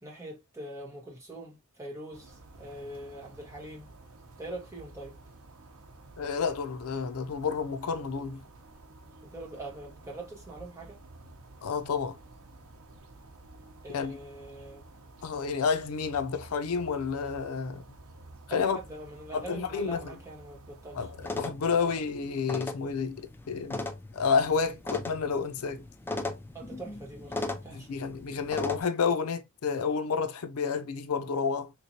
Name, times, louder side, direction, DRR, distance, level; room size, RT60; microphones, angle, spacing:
voice 1, 0.0-3.9 4.4-5.2 9.2-11.0 13.8-14.8 18.5-21.0 21.8-21.9 26.5-27.9, right 1 dB, 15° right, 1.2 m, -43 dB
sound 1, 2.1-21.5, right 2 dB, 75° right, 0.8 m, -51 dB
voice 2, 6.2-8.4 11.6-12.2 13.9-14.2 15.2-17.8 18.5-18.8 19.3-20.2 20.9-23.8 24.1-25.9 27.7-31.7, left 5 dB, 85° left, 0.5 m, -30 dB
sound 2, 21.2-28.8, left 2 dB, 10° left, 0.3 m, -38 dB
3.5 x 3.0 x 2.8 m
head